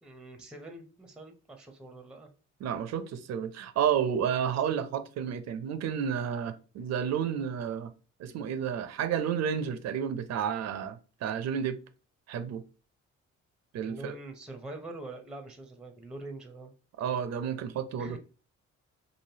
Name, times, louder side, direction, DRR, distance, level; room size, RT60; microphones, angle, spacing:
voice 1, 0.0-2.3 13.8-16.7 18.0-18.2, right 2 dB, 5° right, 0.5 m, -44 dB
voice 2, 2.6-7.9 8.2-11.8 12.3-12.6 13.7-14.1 17.0-18.2, right 8 dB, 60° right, 0.5 m, -31 dB
3.1 x 2.5 x 2.7 m
cardioid pair, 90°, 30 cm